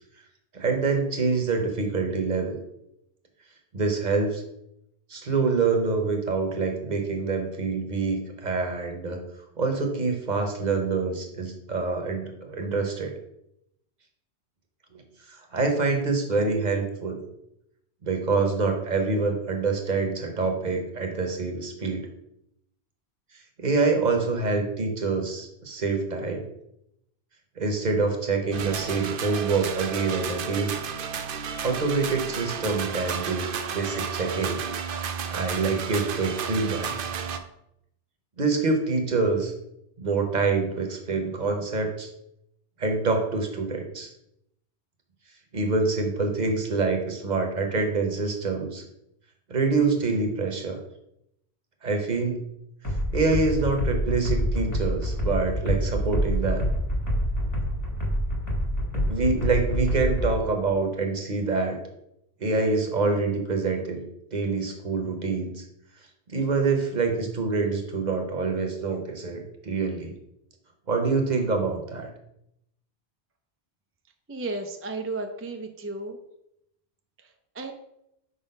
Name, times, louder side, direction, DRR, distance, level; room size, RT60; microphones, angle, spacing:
voice 1, 0.5-2.6 3.7-4.4 5.1-9.2 9.6-13.1 15.3-17.2 18.0-22.1 23.6-26.4 27.6-30.7 31.6-34.6 35.3-36.9 38.4-39.5 40.0-42.1 42.8-44.1 45.5-48.8 49.5-50.8 51.8-52.4 53.1-56.7 58.9-61.8 62.4-64.0 64.3-65.6 66.3-70.1 70.9-72.1, right 4 dB, 45° right, 4 dB, 1.0 m, -26 dB
sound 1, 28.5-37.4, right 7 dB, 60° right, 0.7 m, -32 dB
sound 2, 52.8-60.4, equal, 20° left, 1.0 m, -27 dB
voice 2, 74.3-76.2 77.2-77.7, right 2 dB, 20° right, 5 dB, 0.3 m, -34 dB
4.8 x 4.1 x 5.2 m, 0.80 s
omnidirectional pair, 1.1 m